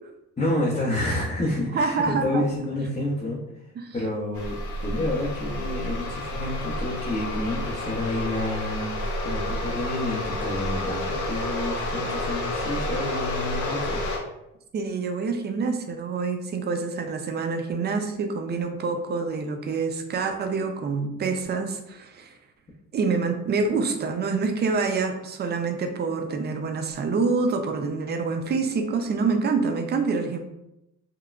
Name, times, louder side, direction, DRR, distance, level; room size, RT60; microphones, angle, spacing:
voice 1, 0.4-4.6 4.8-14.0, left 1 dB, 25° left, -9 dB, 0.7 m, -29 dB
voice 2, 1.7-2.4 3.8-3.9 14.7-22.3 22.9-30.4, right 4 dB, 35° right, 6 dB, 0.4 m, -26 dB
sound 1, 4.3-14.2, left 1 dB, 75° left, 0.7 m, -30 dB
3.0 x 2.1 x 2.3 m, 0.85 s
cardioid pair, 90°, 30 cm